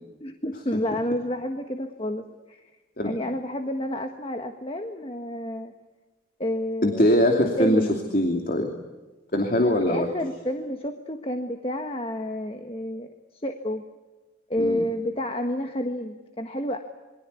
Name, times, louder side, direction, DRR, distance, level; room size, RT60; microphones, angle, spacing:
voice 1, 0.2-2.7 3.0-5.7 6.4-7.0 7.6-7.9 9.6-13.1 13.4-13.8 14.5-16.8, left 1 dB, 30° left, 5 dB, 1.5 m, -30 dB
voice 2, 6.8-7.9 8.1-8.7 9.3-10.1 14.6-14.8, equal, 45° left, 3 dB, 2.8 m, -21 dB
27.5 x 24.0 x 8.4 m, 1.2 s
head